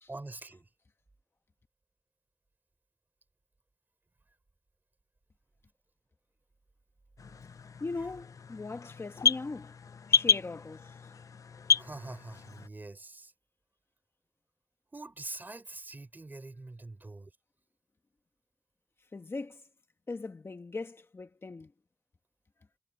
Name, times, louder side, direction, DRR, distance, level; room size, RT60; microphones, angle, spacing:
voice 1, 0.1-0.7 11.7-13.3 14.9-17.3, right 2 dB, 30° right, 5.6 m, -44 dB
sound 1, 7.2-12.7, left 6 dB, 65° left, 0.5 m, -31 dB
voice 2, 7.8-9.8 10.1-11.1 19.1-19.6 20.1-21.7, left 3 dB, 40° left, 1.2 m, -40 dB
wide cardioid pair, 120°, 6 cm